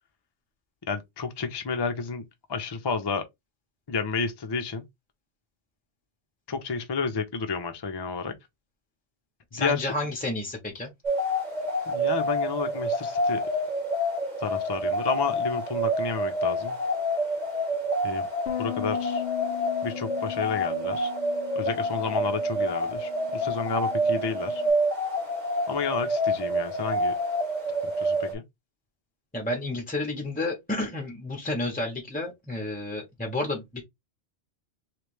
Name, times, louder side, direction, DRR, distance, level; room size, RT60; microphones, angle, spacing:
voice 1, 0.9-2.2 2.5-3.2 3.9-4.8 6.5-8.3 9.5-9.9 11.9-13.4 14.4-16.8 18.0-18.3 18.6-19.2 19.8-21.1 21.6-24.6 25.7-27.1 27.8-28.4, left 4 dB, 30° left, 0.5 m, -31 dB
voice 2, 9.5-10.9 29.3-33.8, left 2 dB, 10° left, 0.9 m, -31 dB
sound 1, 11.0-28.3, equal, 40° right, 1.5 m, -28 dB
Bass guitar, 18.5-24.7, left 12 dB, 65° left, 0.8 m, -38 dB
3.3 x 3.2 x 3.1 m
omnidirectional pair, 1.1 m